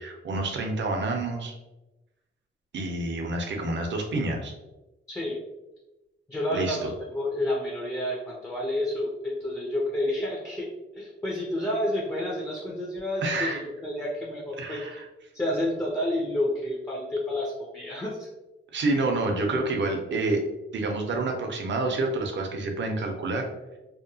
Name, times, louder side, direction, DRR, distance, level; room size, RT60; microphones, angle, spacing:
voice 1, 0.0-1.6 2.7-4.5 6.5-6.9 13.2-13.6 14.6-15.1 18.7-20.5 20.7-23.4, right 2 dB, 60° right, 3 dB, 0.5 m, -28 dB
voice 2, 5.1-5.4 6.3-10.7 11.0-14.8 15.3-18.3, left 1 dB, 10° left, -4 dB, 0.4 m, -30 dB
2.8 x 2.1 x 2.6 m, 1.0 s
wide cardioid pair, 170°, 21 cm